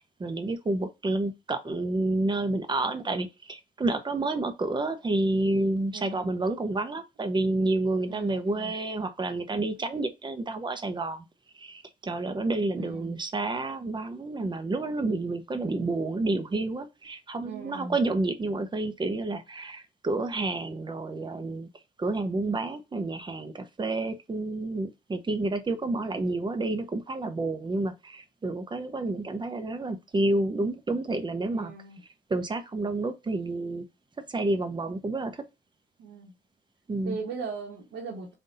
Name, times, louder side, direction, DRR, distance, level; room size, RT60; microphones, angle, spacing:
voice 1, 0.0-11.2 11.5-21.7 22.0-31.7 32.3-33.8 34.3-35.4 36.9-37.2, right 2 dB, 25° right, 0.8 m, -29 dB
voice 2, 5.9-6.3 8.1-8.7 12.7-13.1 17.4-18.0 25.9-26.4 31.5-32.0 36.0-36.3 37.0-38.3, right 4 dB, 80° right, 1.4 m, -39 dB
3.9 x 2.6 x 3.9 m
cardioid pair, 90°, 20 cm